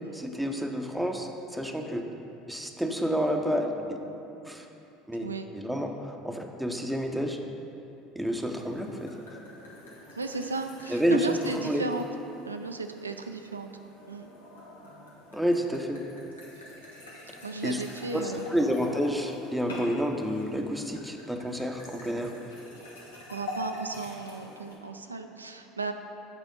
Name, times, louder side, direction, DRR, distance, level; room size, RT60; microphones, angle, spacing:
voice 1, 0.1-2.0 2.5-4.0 4.3-4.7 5.1-7.4 8.1-9.2 10.9-11.4 11.6-11.8 15.3-16.0 17.6-17.8 18.1-22.3, equal, ahead, 3 dB, 0.7 m, -29 dB
sound 1, 8.3-24.7, left 1 dB, 80° left, 1.2 m, -45 dB
voice 2, 10.2-12.0 12.4-13.7 14.1-14.3 17.2-18.6 23.3-25.9, right 3 dB, 90° right, 6 dB, 0.3 m, -35 dB
8.1 x 4.3 x 5.2 m, 2.8 s
figure-of-eight pair, 70°, 0 cm